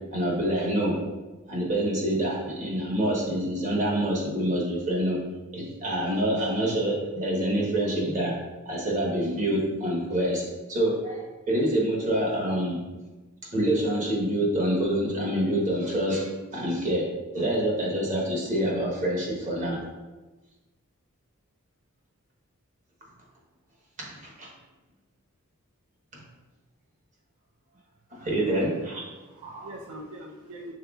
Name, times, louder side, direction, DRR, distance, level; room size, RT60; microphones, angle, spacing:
voice 1, 0.1-1.0 1.5-5.2 5.5-8.3 8.6-10.4 10.7-12.8 13.5-17.0 17.3-19.8 24.0-24.5 26.1-26.2 28.1-29.0 29.4-29.7, right 1 dB, 35° right, -3 dB, 1.1 m, -26 dB
voice 2, 28.1-28.6 29.1-30.7, right 2 dB, 80° right, -1 dB, 0.6 m, -41 dB
5.6 x 3.9 x 2.4 m, 1.2 s
head